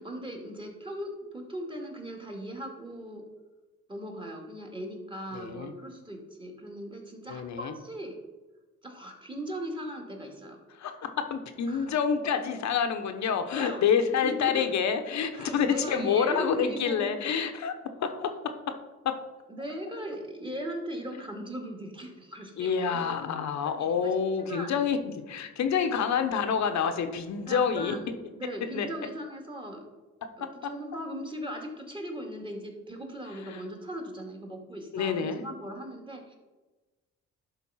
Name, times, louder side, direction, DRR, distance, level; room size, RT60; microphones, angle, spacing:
voice 1, 0.0-3.2 3.9-8.2 8.8-10.6 11.7-11.9 13.5-13.8 14.2-14.7 15.3-17.1 19.5-24.1 24.4-24.7 27.5-29.8 30.4-36.4, equal, 15° right, 1 dB, 2.1 m, -38 dB
voice 2, 5.3-5.7 7.3-7.7 10.8-17.7 18.0-18.7 19.0-19.1 22.6-28.0 28.7-28.9 30.4-30.5 33.5-33.6 34.9-35.5, left 7 dB, 65° left, 7 dB, 1.1 m, -28 dB
11.0 x 3.9 x 5.7 m, 1.2 s
cardioid pair, 90°, 30 cm